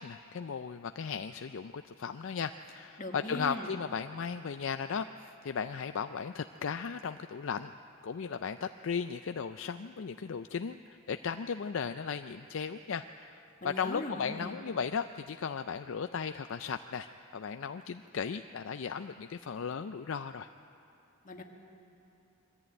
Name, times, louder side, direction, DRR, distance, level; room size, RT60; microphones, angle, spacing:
voice 1, 0.0-7.7 8.0-20.5, left 6 dB, 60° left, 9 dB, 0.4 m, -36 dB
voice 2, 3.0-3.7 13.6-14.6 21.2-21.4, left 1 dB, 35° left, 2 dB, 1.6 m, -39 dB
22.5 x 14.0 x 9.0 m, 2.8 s
head